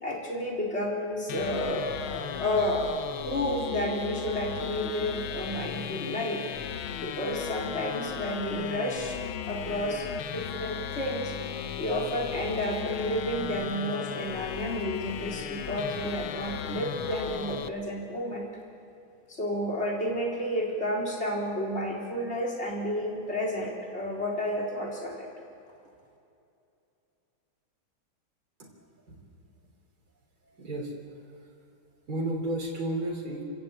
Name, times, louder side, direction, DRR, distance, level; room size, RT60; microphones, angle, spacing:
voice 1, 0.0-2.9 3.2-6.5 7.0-9.2 9.5-11.3 11.8-18.5 19.3-25.3, equal, 30° left, -2 dB, 4.1 m, -31 dB
sound 1, 1.3-17.7, left 9 dB, 80° left, 1.7 m, -36 dB
voice 2, 30.5-30.9 31.3-31.4 32.1-33.4, right 1 dB, 45° right, -2 dB, 3.7 m, -32 dB
29.5 x 15.0 x 8.8 m, 2.7 s
omnidirectional pair, 2.3 m